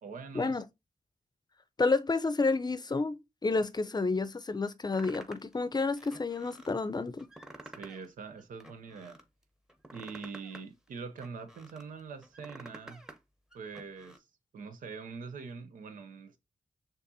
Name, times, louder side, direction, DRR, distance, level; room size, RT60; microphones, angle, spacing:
voice 1, 0.0-0.6 7.6-9.2 9.9-13.0 13.5-14.3 14.5-16.4, right 5 dB, 90° right, 0.6 m, -44 dB
voice 2, 1.8-7.3, left 3 dB, 30° left, 0.5 m, -30 dB
sound 1, 4.9-5.5 6.0-6.7 7.2-8.1 8.4-9.2 9.7-11.8 12.2-13.2 13.5-14.2, right 1 dB, 5° right, 0.9 m, -50 dB
6.5 x 2.5 x 2.6 m
cardioid pair, 40°, 13 cm